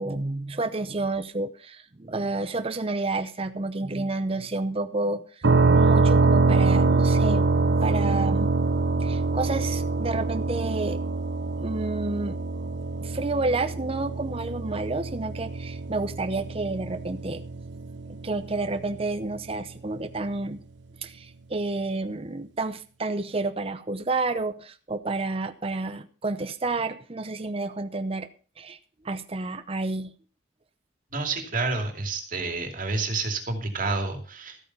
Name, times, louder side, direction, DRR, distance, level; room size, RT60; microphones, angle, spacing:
voice 1, 0.0-5.2 5.5-8.5 9.0-11.0 11.6-12.4 13.0-17.4 18.1-20.6 21.0-28.3 28.6-28.8 29.0-30.1, right 2 dB, 30° right, 10 dB, 0.7 m, -30 dB
sound 1, 5.4-19.1, right 3 dB, 75° right, 0.9 m, -24 dB
voice 2, 31.1-34.6, right 3 dB, 50° right, 5 dB, 2.6 m, -29 dB
14.0 x 8.8 x 5.5 m, 0.38 s
head